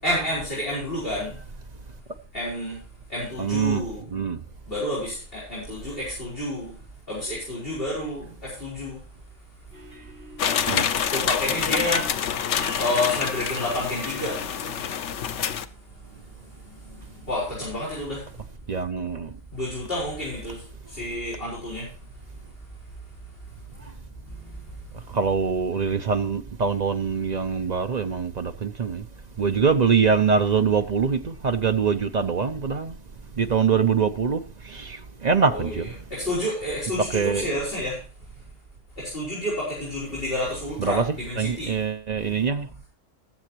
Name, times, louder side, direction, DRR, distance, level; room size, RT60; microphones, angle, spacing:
voice 1, 0.0-1.3 2.3-2.8 3.1-4.0 4.7-6.7 7.1-9.0 11.1-12.1 12.8-14.4 16.9-18.2 19.5-20.6 20.9-21.9 35.5-38.0 39.0-41.7, left 1 dB, 55° left, 5.5 m, -29 dB
voice 2, 3.4-3.8 4.1-4.4 10.7-10.8 18.7-19.3 25.1-29.0 29.4-33.0 33.4-35.9 37.1-37.4 40.8-41.0 41.4-42.7, right 6 dB, 45° right, 0.7 m, -24 dB
sound 1, 9.7-14.8, left 1 dB, 60° right, 5.6 m, -42 dB
sound 2, 10.4-15.7, left 8 dB, 85° left, 1.1 m, -27 dB
20.0 x 7.7 x 2.9 m
omnidirectional pair, 1.2 m